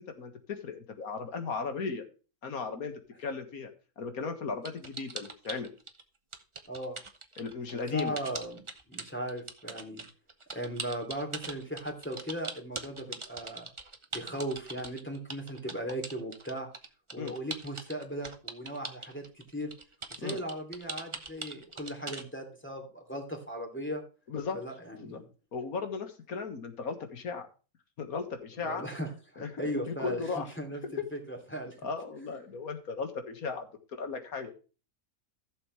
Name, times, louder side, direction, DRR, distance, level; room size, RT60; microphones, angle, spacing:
voice 1, 0.0-2.0 2.4-2.9 3.2-3.7 4.0-5.7 7.4-8.2 17.2-17.3 20.2-20.4 24.3-24.6 25.0-25.2 25.5-27.5 28.0-28.8 29.4-30.5 30.8-30.9 31.8-33.7 34.0-34.5, left 4 dB, 80° left, 6 dB, 2.0 m, -36 dB
sound 1, 4.6-6.0 6.3-22.2, right 3 dB, 25° right, 0.8 m, -41 dB
voice 2, 6.7-7.0 7.7-10.0 10.5-13.7 14.1-16.7 17.1-19.7 20.1-24.0 24.5-25.3 28.6-31.8, right 1 dB, 10° left, 1 dB, 2.7 m, -38 dB
15.0 x 7.0 x 3.2 m, 0.35 s
omnidirectional pair, 1.5 m